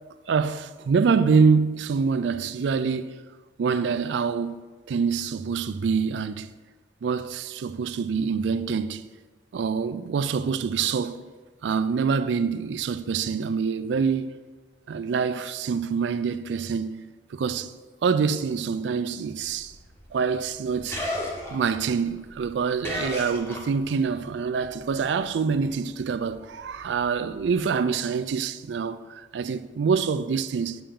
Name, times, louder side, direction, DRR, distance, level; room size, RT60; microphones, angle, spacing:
voice 1, 0.3-3.2 3.6-4.6 4.9-6.5 7.0-9.0 9.5-11.2 11.6-14.3 14.9-17.7 18.0-19.7 20.1-21.0 21.5-30.8, right 5 dB, 80° right, 0.3 m, -25 dB
sound 1, 19.4-24.1 24.4-27.7, left 1 dB, 15° left, 0.9 m, -36 dB
6.9 x 5.7 x 3.7 m
head